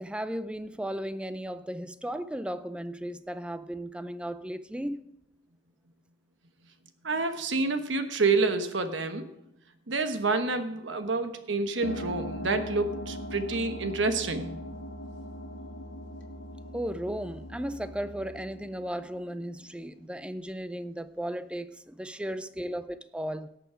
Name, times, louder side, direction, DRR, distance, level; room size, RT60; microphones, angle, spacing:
voice 1, 0.0-5.1 16.7-23.6, equal, 5° right, 0.4 m, -35 dB
voice 2, 7.0-9.3 9.9-14.5, right 3 dB, 80° right, 1.1 m, -28 dB
sound 1, 11.8-20.0, equal, 85° left, 1.8 m, -40 dB
17.5 x 6.9 x 5.0 m
head